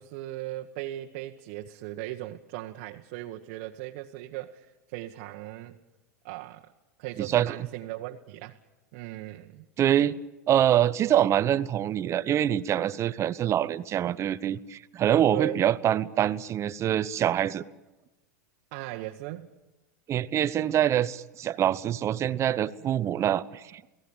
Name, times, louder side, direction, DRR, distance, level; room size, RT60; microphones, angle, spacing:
voice 1, 0.0-5.8 6.2-6.7 7.0-8.6 8.9-9.6 15.3-15.6 18.7-19.5, right 16 dB, 55° right, 2 dB, 1.3 m, -37 dB
voice 2, 7.2-7.6 9.8-10.1 10.5-17.6 20.1-23.9, right 10 dB, 30° right, 16 dB, 0.9 m, -25 dB
29.5 x 18.0 x 8.9 m, 1.1 s
hypercardioid pair, 95°, 9 cm